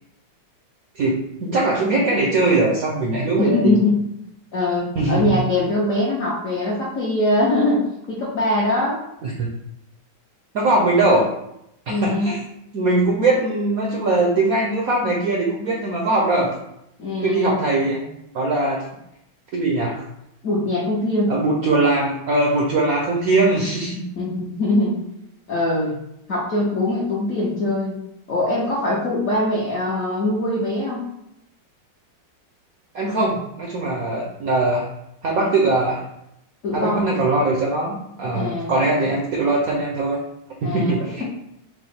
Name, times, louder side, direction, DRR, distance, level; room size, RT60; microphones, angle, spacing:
voice 1, 0.9-3.7 5.0-5.4 9.2-9.5 10.5-11.3 12.0-12.4 12.7-16.5 17.2-18.1 18.3-18.8 19.5-20.0 21.3-24.0 32.9-34.9 35.2-36.0 36.7-40.2 40.6-41.2, right 2 dB, 75° right, -2 dB, 0.8 m, -21 dB
voice 2, 3.4-4.0 4.5-9.0 11.9-12.4 17.0-17.6 20.4-21.3 24.2-25.0 25.5-26.0 26.3-28.0 28.3-31.1 36.6-37.1 38.3-38.7 40.6-41.2, left 2 dB, 65° left, -5 dB, 0.8 m, -22 dB
4.7 x 2.0 x 4.2 m, 0.80 s
omnidirectional pair, 2.2 m